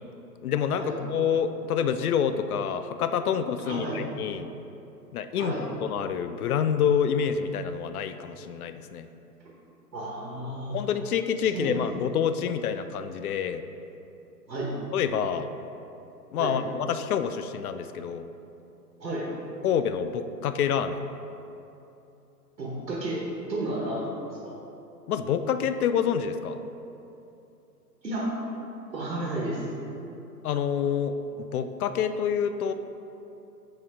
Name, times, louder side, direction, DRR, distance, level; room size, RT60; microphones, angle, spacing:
voice 1, 0.4-4.5 5.1-5.5 5.8-9.1 10.7-13.7 14.9-15.5 16.3-18.3 19.6-21.0 25.1-26.6 30.4-32.7, left 7 dB, 65° left, 10 dB, 0.5 m, -27 dB
voice 2, 3.6-4.0 5.4-5.6 9.9-10.8 11.5-11.7 14.5-14.7 16.4-16.5 19.0-19.3 22.6-23.2 23.4-24.5 28.0-28.3 28.9-29.6, right 2 dB, 85° right, -5 dB, 1.4 m, -32 dB
6.1 x 4.9 x 3.5 m, 2.8 s
figure-of-eight pair, 125°, 49 cm